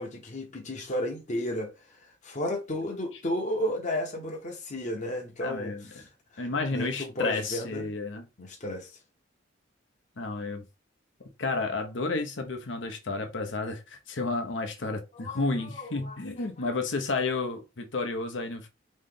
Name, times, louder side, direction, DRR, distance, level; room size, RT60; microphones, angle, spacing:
voice 1, 0.0-7.9 8.4-9.0 15.1-16.7, left 1 dB, 40° left, 0.9 m, -34 dB
voice 2, 5.4-5.8 6.4-8.3 10.2-10.6 11.4-18.7, left 3 dB, 75° left, 0.8 m, -31 dB
3.8 x 3.2 x 3.8 m
head